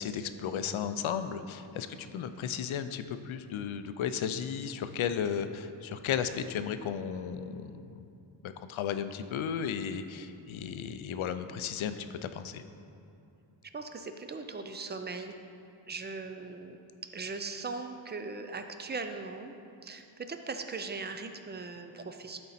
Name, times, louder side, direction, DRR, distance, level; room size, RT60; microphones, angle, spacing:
voice 1, 0.0-8.1 8.4-12.6, left 8 dB, 75° left, 10 dB, 0.6 m, -34 dB
voice 2, 13.7-15.4 15.9-16.8 17.1-19.5 19.8-22.4, right 4 dB, 25° right, 7 dB, 0.3 m, -39 dB
12.5 x 4.3 x 4.1 m, 2.7 s
wide cardioid pair, 150°, 49 cm